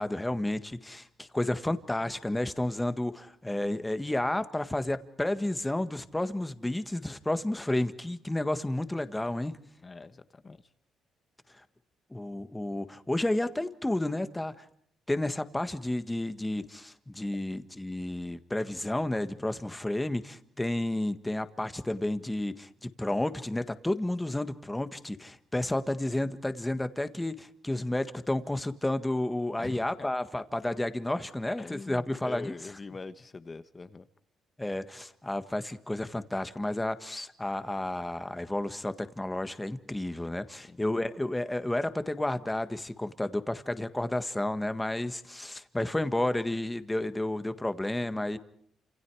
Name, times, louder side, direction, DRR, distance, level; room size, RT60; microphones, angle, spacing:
voice 1, 0.0-9.6 12.1-14.6 15.1-32.5 34.6-48.4, left 1 dB, 10° left, 10 dB, 1.6 m, -31 dB
voice 2, 9.8-10.6 29.6-30.1 31.6-34.1 40.5-40.8, left 3 dB, 30° left, 12 dB, 1.4 m, -43 dB
28.5 x 27.0 x 4.9 m, 0.66 s
cardioid pair, 90°, 0 cm